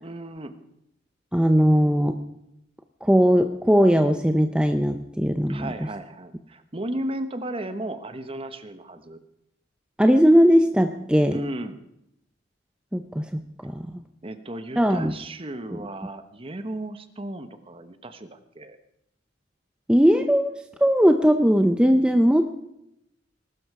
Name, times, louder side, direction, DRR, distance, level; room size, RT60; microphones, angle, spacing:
voice 1, 0.0-0.6 5.5-9.2 11.3-11.8 14.2-18.8, right 1 dB, 30° right, 9 dB, 1.1 m, -35 dB
voice 2, 1.3-2.3 3.0-5.7 10.0-11.4 12.9-13.9 14.8-15.1 19.9-20.5 20.8-22.6, equal, 5° right, 6 dB, 0.6 m, -19 dB
20.5 x 12.5 x 4.8 m, 0.82 s
head